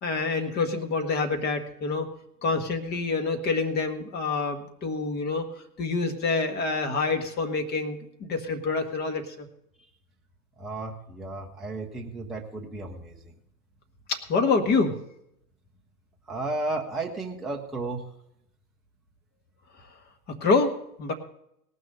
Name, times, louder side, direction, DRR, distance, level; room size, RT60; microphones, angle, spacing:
voice 1, 0.0-2.1 2.4-5.4 5.8-9.5 14.1-15.0 20.3-21.1, left 4 dB, 20° left, 6 dB, 1.5 m, -27 dB
voice 2, 10.6-13.3 16.3-18.1, right 2 dB, ahead, -1 dB, 0.5 m, -33 dB
18.0 x 6.3 x 6.3 m, 0.77 s
hypercardioid pair, 135°, 47 cm